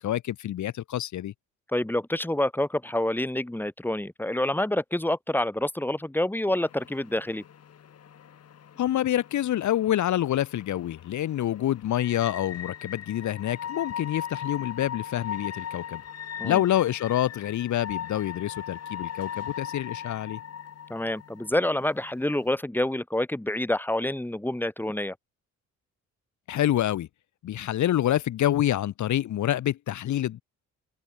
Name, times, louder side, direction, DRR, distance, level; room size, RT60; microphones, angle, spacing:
voice 1, 0.0-1.3 8.8-16.0 16.4-20.4 26.5-27.1 27.4-30.4, left 12 dB, 70° left, 2.3 m, -27 dB
voice 2, 1.7-7.4 16.4-16.6 20.9-25.2, left 1 dB, 5° left, 3.9 m, -27 dB
sound 1, 6.6-22.5, left 9 dB, 55° left, 3.0 m, -39 dB
cardioid pair, 90°, 30 cm